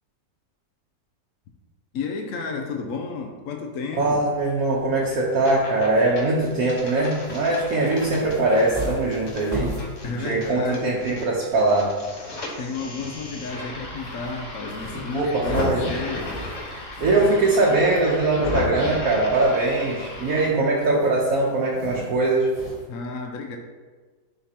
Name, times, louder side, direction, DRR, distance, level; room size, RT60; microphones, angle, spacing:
voice 1, 1.9-4.2 10.0-10.9 12.6-16.3 22.9-23.6, left 4 dB, 65° left, 3 dB, 0.8 m, -32 dB
voice 2, 4.0-9.7 10.0-11.9 15.1-15.9 17.0-22.5, right 2 dB, 60° right, -3 dB, 1.2 m, -21 dB
sound 1, 4.4-22.9, right 1 dB, 10° left, 1.8 m, -40 dB
sound 2, 5.2-5.9 6.2-11.2 11.5-20.5, left 2 dB, 45° left, 1.5 m, -34 dB
11.0 x 3.7 x 2.9 m, 1.4 s
omnidirectional pair, 1.9 m